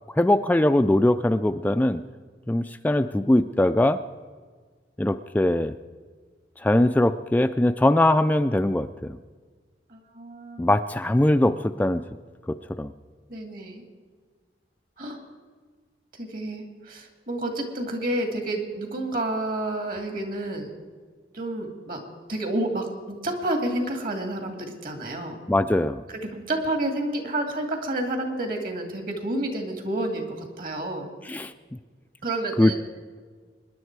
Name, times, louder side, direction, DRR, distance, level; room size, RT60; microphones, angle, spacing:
voice 1, 0.1-2.0 2.5-4.0 5.0-5.7 6.6-9.2 10.6-12.0 12.5-12.9 25.5-26.0 31.2-31.8 32.6-32.7, left 1 dB, 10° left, 9 dB, 0.3 m, -21 dB
voice 2, 9.9-10.6 13.3-13.8 15.0-15.2 16.2-20.7 21.3-22.0 22.3-25.4 26.3-31.1 32.2-32.7, right 1 dB, 55° right, 4 dB, 2.4 m, -29 dB
24.0 x 10.5 x 4.7 m, 1.5 s
head